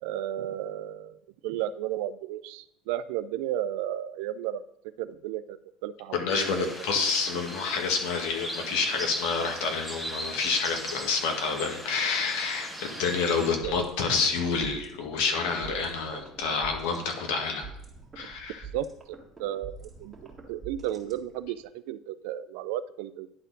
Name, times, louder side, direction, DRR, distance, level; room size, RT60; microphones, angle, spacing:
voice 1, 0.0-4.6 5.0-6.7 13.4-13.7 18.7-20.1 20.5-23.3, right 12 dB, 85° right, 14 dB, 0.4 m, -34 dB
voice 2, 6.1-17.7 18.1-18.6, left 5 dB, 80° left, 3 dB, 1.6 m, -28 dB
sound 1, 6.3-13.5, equal, 10° left, 1.2 m, -39 dB
sound 2, 13.6-21.6, right 4 dB, 20° right, 1.7 m, -46 dB
10.5 x 4.2 x 4.0 m, 0.81 s
cardioid pair, 135°, 0 cm